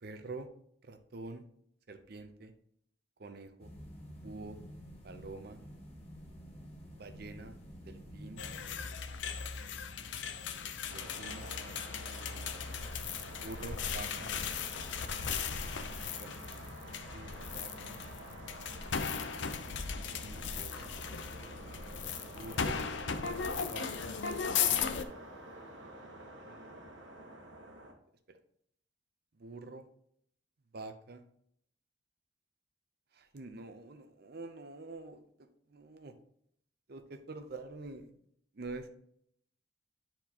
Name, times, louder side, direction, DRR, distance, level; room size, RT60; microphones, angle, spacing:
voice 1, 0.0-0.5 0.8-1.4 1.9-2.5 3.2-3.7 4.2-4.6 5.0-5.6 7.0-7.6 7.8-8.4 10.9-11.4 12.1-12.5 13.4-14.3 16.2-16.6 17.1-18.0 20.1-20.9 22.2-22.8 23.6-24.1 24.6-25.1 25.8-26.3 26.8-26.9 28.3-28.4 29.4-29.8 30.7-31.2 33.1-36.1 36.9-38.1 38.5-38.9, right 3 dB, 55° right, 8 dB, 0.7 m, -47 dB
sound 1, 3.6-8.8, equal, 35° left, 1.4 m, -50 dB
sound 2, 8.4-25.0, left 6 dB, 70° left, 0.6 m, -37 dB
sound 3, 10.9-27.9, right 1 dB, 85° right, 1.3 m, -49 dB
9.9 x 4.4 x 2.9 m, 0.69 s
head